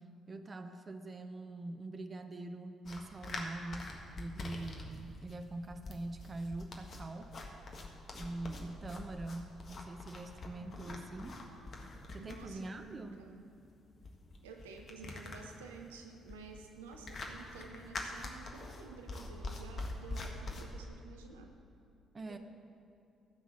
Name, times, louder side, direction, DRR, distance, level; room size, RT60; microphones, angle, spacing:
voice 1, 0.3-7.3 8.1-11.4 12.1-13.3 22.1-22.4, right 2 dB, 35° right, 7 dB, 0.8 m, -44 dB
sound 1, 2.8-20.6, left 2 dB, 50° left, 1.6 m, -45 dB
voice 2, 10.6-11.8 12.2-13.5 14.4-21.5 22.3-22.4, right 4 dB, 80° right, 3 dB, 0.8 m, -52 dB
14.5 x 6.1 x 7.3 m, 2.5 s
figure-of-eight pair, 45°, 0 cm